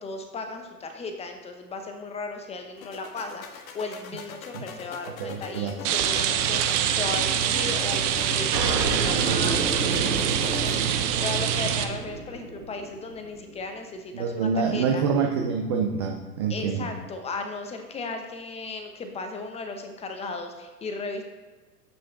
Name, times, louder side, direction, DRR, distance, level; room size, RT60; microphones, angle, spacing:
voice 1, 0.0-15.0 16.5-21.2, left 3 dB, 15° left, 5 dB, 0.9 m, -36 dB
sound 1, 2.8-10.8, left 7 dB, 55° left, 1.1 m, -41 dB
voice 2, 5.2-5.7 14.1-16.8, right 6 dB, 20° right, 2 dB, 0.3 m, -26 dB
Rain, 5.8-11.8, right 9 dB, 50° right, 1.0 m, -25 dB
sound 2, 8.5-13.6, right 4 dB, 90° right, 1.3 m, -30 dB
8.2 x 6.1 x 4.1 m, 1.3 s
hypercardioid pair, 115°, 48 cm